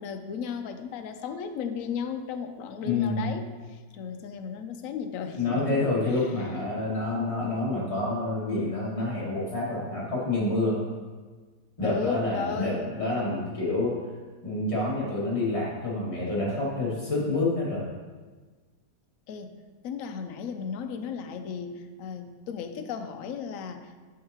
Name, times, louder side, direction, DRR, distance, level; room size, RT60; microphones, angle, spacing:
voice 1, 0.0-6.7 11.8-13.3 13.6-14.0 19.3-19.6 19.8-24.0, left 6 dB, 70° left, 7 dB, 0.8 m, -35 dB
voice 2, 2.8-3.4 5.4-10.8 11.8-13.9 14.4-17.8, left 2 dB, 20° left, -7 dB, 1.9 m, -28 dB
8.4 x 6.4 x 2.9 m, 1.4 s
omnidirectional pair, 1.9 m